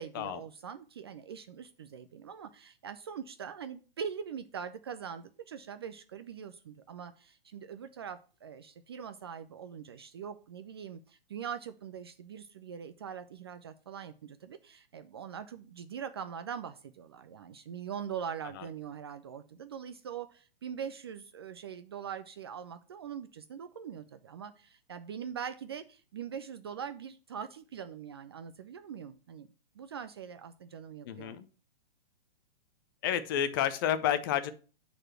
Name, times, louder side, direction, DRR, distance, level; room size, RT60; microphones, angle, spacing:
voice 1, 0.0-29.5 29.8-31.4, right 7 dB, 30° right, 10 dB, 0.4 m, -42 dB
voice 2, 31.1-31.5 33.0-34.5, left 10 dB, 25° left, 13 dB, 0.5 m, -30 dB
8.9 x 4.2 x 5.8 m, 0.37 s
figure-of-eight pair, 120°, 29 cm